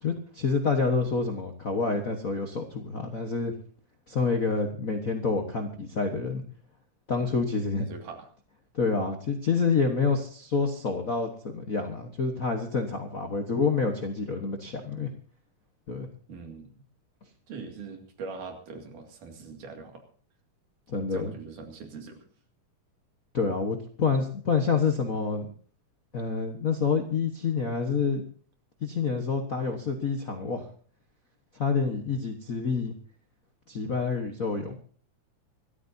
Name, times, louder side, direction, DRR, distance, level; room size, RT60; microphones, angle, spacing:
voice 1, 0.0-3.5 4.1-6.4 7.1-7.9 8.7-15.1 15.9-16.1 20.9-21.3 23.3-25.5 26.1-28.2 28.8-30.7 31.6-32.9 33.7-34.8, left 4 dB, 55° left, 4 dB, 0.9 m, -28 dB
voice 2, 7.8-8.3 16.3-16.9 17.5-20.0 21.1-22.2, right 4 dB, 85° right, 4 dB, 3.8 m, -42 dB
25.5 x 13.5 x 2.7 m, 0.43 s
omnidirectional pair, 3.5 m